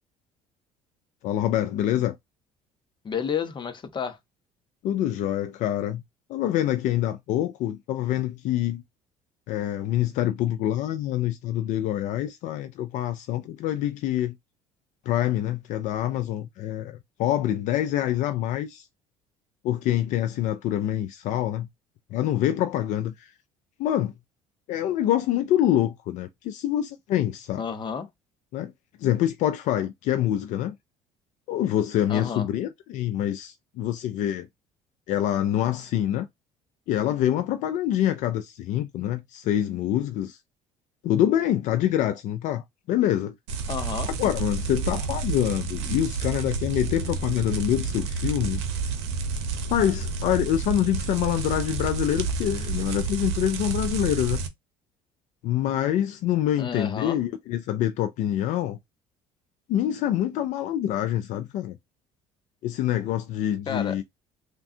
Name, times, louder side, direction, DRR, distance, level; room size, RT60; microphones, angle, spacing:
voice 1, 1.2-2.2 4.8-6.0 6.3-8.8 9.5-14.3 15.1-18.9 19.6-21.7 22.1-23.3 23.8-24.1 24.7-27.6 28.5-28.7 29.0-30.7 31.5-34.5 35.1-36.3 36.9-40.4 41.0-42.6 42.9-43.3 44.0-48.6 49.7-54.4 55.4-58.8 59.7-61.8 62.6-64.0, left 12 dB, 60° left, 0.4 m, -26 dB
voice 2, 3.0-4.2 27.6-28.1 32.1-32.4 43.7-44.1 56.6-57.2 63.7-64.0, left 6 dB, 35° left, 0.8 m, -30 dB
sound 1, 43.5-54.5, right 4 dB, 90° right, 0.7 m, -30 dB
3.4 x 2.2 x 2.6 m
hypercardioid pair, 70°, 14 cm